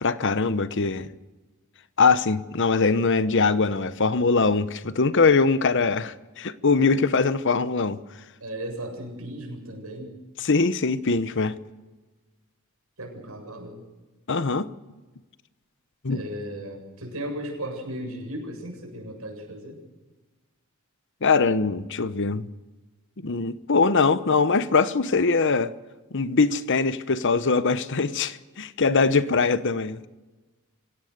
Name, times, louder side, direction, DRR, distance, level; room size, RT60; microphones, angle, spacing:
voice 1, 0.0-1.1 2.0-8.0 10.4-11.6 14.3-14.7 16.0-16.2 21.2-22.5 23.2-25.7 26.1-30.0, left 4 dB, 60° left, 0.9 m, -22 dB
voice 2, 8.4-10.2 13.0-13.8 16.1-19.8, right 1 dB, 80° right, 7.7 m, -36 dB
27.0 x 17.0 x 6.7 m
head